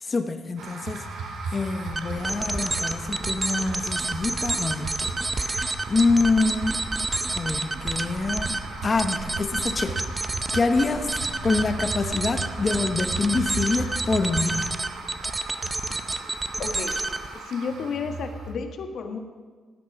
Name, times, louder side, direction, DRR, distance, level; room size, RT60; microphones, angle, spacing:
voice 1, 0.0-5.1 5.4-6.9 7.3-8.6 8.8-11.1 11.4-14.7, left 3 dB, 30° left, 7 dB, 1.1 m, -26 dB
sound 1, 0.6-18.5, right 3 dB, 85° right, 2.6 m, -36 dB
sound 2, 1.9-17.4, right 2 dB, 15° right, 0.6 m, -29 dB
voice 2, 16.6-17.0 17.5-19.2, left 5 dB, 60° left, 5 dB, 1.5 m, -32 dB
16.0 x 11.0 x 6.0 m, 1.5 s
cardioid pair, 140°, 0 cm